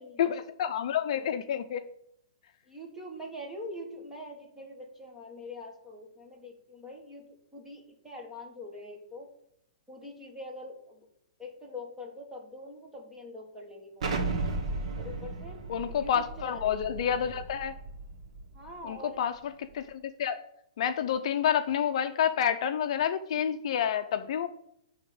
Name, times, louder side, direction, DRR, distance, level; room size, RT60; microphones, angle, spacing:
voice 1, 0.2-1.8 15.7-17.7 18.8-20.4 20.8-24.5, left 9 dB, 50° left, 8 dB, 0.6 m, -29 dB
voice 2, 2.7-9.3 9.9-11.1 11.4-14.3 15.0-15.6 16.0-17.3 18.5-19.2, left 1 dB, 5° right, 0 dB, 1.5 m, -44 dB
Explosion, 14.0-18.7, right 3 dB, 55° right, 1.5 m, -35 dB
10.5 x 3.6 x 7.0 m, 0.75 s
hypercardioid pair, 160°, 4 cm